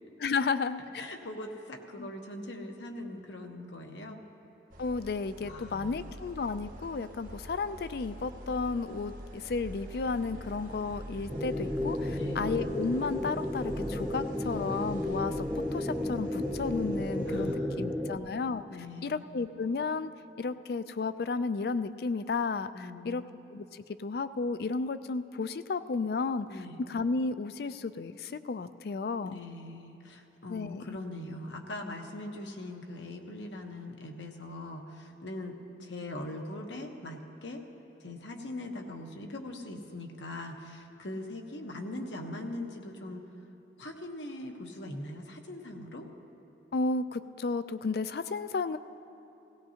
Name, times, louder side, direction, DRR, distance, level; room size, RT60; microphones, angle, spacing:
voice 1, 0.2-0.8 2.0-2.1 4.8-15.5 15.7-18.6 19.0-20.1 20.4-23.2 23.5-26.5 26.8-29.4 30.5-31.0 46.7-48.8, left 4 dB, 55° left, 12 dB, 0.4 m, -33 dB
voice 2, 0.9-4.2 5.4-6.0 12.1-12.7 17.3-18.3 18.7-19.3 22.7-23.3 26.5-26.8 29.2-37.6 38.0-43.3 43.8-46.1, left 1 dB, 85° left, 3 dB, 1.1 m, -41 dB
sound 1, 4.7-17.6, equal, 50° right, 1.1 m, -46 dB
sound 2, 9.8-15.2, right 1 dB, 70° right, 1.9 m, -50 dB
sound 3, 11.3-18.2, left 1 dB, 5° left, 0.6 m, -33 dB
17.5 x 17.0 x 2.9 m, 2.8 s
head